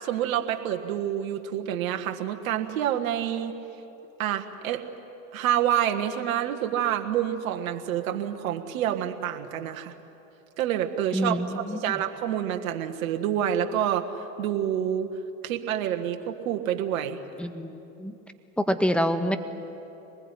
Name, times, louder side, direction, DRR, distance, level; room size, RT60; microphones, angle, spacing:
voice 1, 0.0-3.5 4.2-4.8 5.3-9.9 10.6-15.1 15.4-17.2, right 10 dB, 70° right, 5 dB, 1.7 m, -28 dB
voice 2, 11.1-11.9 17.4-18.1 18.6-19.4, equal, 5° left, 8 dB, 1.7 m, -27 dB
24.5 x 20.5 x 9.8 m, 2.9 s
hypercardioid pair, 80°, 42 cm